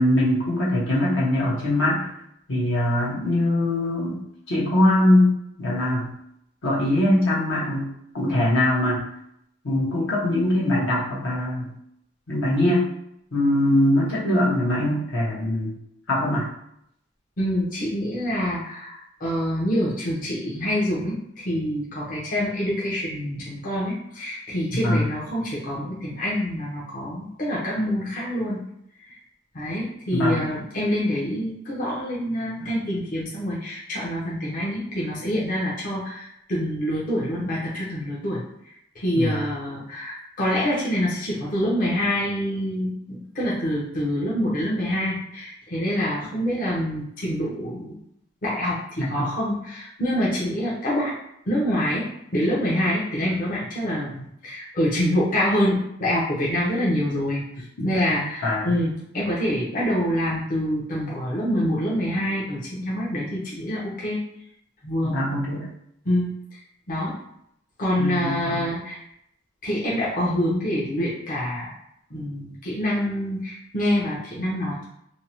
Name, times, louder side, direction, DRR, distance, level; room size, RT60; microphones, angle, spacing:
voice 1, 0.0-2.1 2.5-6.1 6.6-7.9 8.1-9.0 9.6-11.7 12.3-12.9 13.3-15.7 16.1-16.4 24.8-25.0 30.1-30.5 39.1-39.5 49.0-49.3 57.8-58.8 65.0-65.7 68.0-68.6, left 1 dB, 75° left, -5 dB, 0.8 m, -22 dB
voice 2, 17.4-28.6 29.1-29.2 29.5-38.4 38.9-48.0 48.4-51.2 51.5-64.2 64.8-65.2 66.0-66.6 66.9-67.1 67.8-69.0 69.6-71.7 72.1-74.8, equal, 45° left, -6 dB, 0.6 m, -26 dB
2.6 x 2.0 x 2.8 m, 0.74 s
head